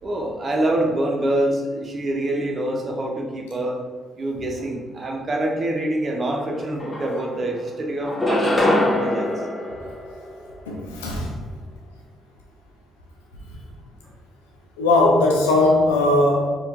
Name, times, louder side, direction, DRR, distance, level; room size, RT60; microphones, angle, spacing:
voice 1, 0.0-3.8 4.2-9.4, right 1 dB, 40° right, 0 dB, 0.9 m, -25 dB
sound 1, 6.4-6.5 6.8-7.6 8.0-10.6, left 1 dB, 20° left, 1.3 m, -24 dB
voice 2, 6.8-7.2 10.7-11.3 14.8-16.5, left 2 dB, 85° left, -1 dB, 0.6 m, -19 dB
4.4 x 2.6 x 3.6 m, 1.4 s
hypercardioid pair, 45°, 0 cm